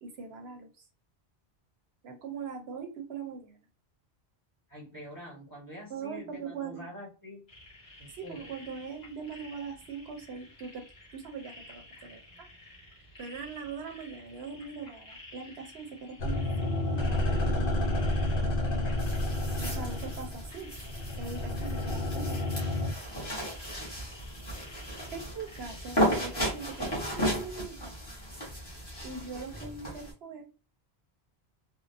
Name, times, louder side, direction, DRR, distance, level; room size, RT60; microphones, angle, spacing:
voice 1, 0.0-0.7 2.0-3.6 5.9-6.8 8.1-12.5 13.2-17.7 18.3-19.0 19.6-20.7 21.2-22.4 25.1-28.0 29.0-30.5, right 5 dB, 80° right, 4 dB, 1.0 m, -41 dB
voice 2, 4.7-7.5 8.0-8.5 25.0-25.2, left 1 dB, 20° right, -4 dB, 0.9 m, -46 dB
sound 1, 7.5-27.3, left 1 dB, 40° left, 1.7 m, -52 dB
sound 2, 16.2-22.9, left 1 dB, 60° left, 0.8 m, -30 dB
sound 3, 19.0-30.1, equal, 25° left, 1.4 m, -35 dB
3.6 x 2.1 x 2.6 m, 0.33 s
omnidirectional pair, 1.1 m